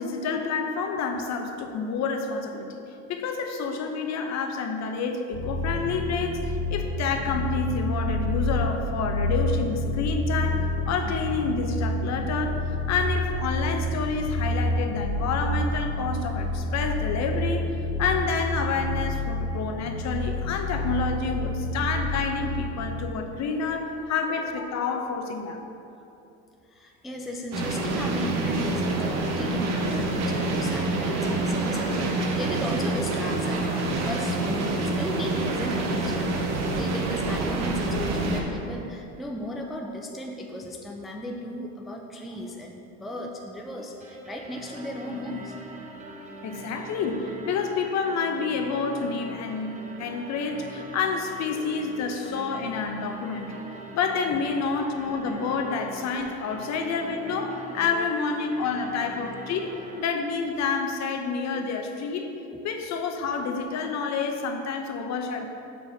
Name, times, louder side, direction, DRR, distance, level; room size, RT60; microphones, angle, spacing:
voice 1, 0.0-2.7 3.1-25.6 46.4-53.6 53.9-62.3 62.6-65.5, left 5 dB, 45° left, 5 dB, 0.9 m, -29 dB
sound 1, 5.3-23.1, left 1 dB, 85° left, 1.6 m, -28 dB
voice 2, 25.5-26.0 26.7-36.3 36.8-45.6 45.9-46.3 51.6-52.5 54.3-54.9 56.8-58.1 58.5-58.6 62.5-62.6, left 1 dB, ahead, 1 dB, 0.5 m, -36 dB
sound 2, 27.5-38.4, right 2 dB, 45° right, 1.2 m, -27 dB
sound 3, 44.0-60.0, right 2 dB, 20° right, 0.9 m, -43 dB
6.2 x 4.7 x 6.7 m, 2.8 s
supercardioid pair, 110°, 38 cm